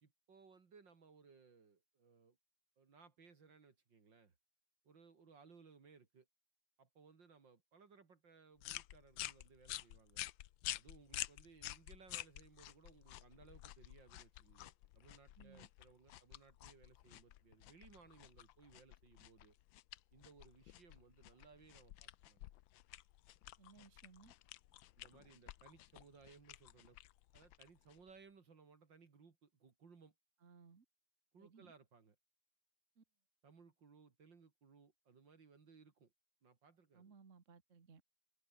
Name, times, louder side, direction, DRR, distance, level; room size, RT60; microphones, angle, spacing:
voice 1, 0.0-2.4 2.8-4.4 4.8-6.3 6.8-10.3 10.8-19.6 20.1-22.5 25.0-27.0 27.3-30.1 31.3-32.2 33.4-36.1 36.4-37.1, right 5 dB, 75° right, 3.4 m, -64 dB
sound 1, 8.6-28.2, left 14 dB, 85° left, 1.5 m, -51 dB
voice 2, 15.4-15.7 23.6-24.3 30.4-30.9 31.4-31.7 33.0-33.1 36.9-38.0, right 5 dB, 40° right, 2.1 m, -62 dB
omnidirectional pair, 2.0 m